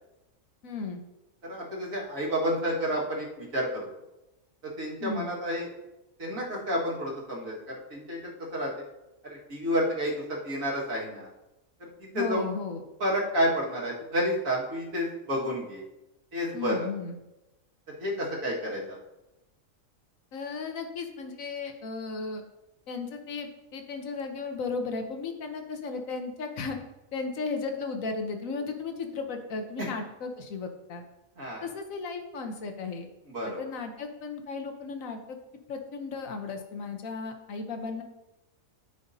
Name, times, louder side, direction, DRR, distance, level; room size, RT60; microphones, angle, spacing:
voice 1, 0.6-1.0 5.0-5.3 12.1-12.8 16.5-17.2 20.3-22.4 22.9-26.8 27.1-31.1 31.6-33.1 33.6-35.4 35.7-38.0, left 4 dB, 75° left, 5 dB, 1.3 m, -35 dB
voice 2, 1.4-3.9 4.8-5.7 6.2-8.7 9.2-11.3 11.8-11.9 12.1-12.5 13.0-15.8 16.3-16.9 18.0-19.0 29.8-29.9 31.4-31.7 33.3-33.6, equal, 75° right, -4 dB, 2.3 m, -30 dB
13.5 x 5.0 x 2.7 m, 0.96 s
omnidirectional pair, 1.4 m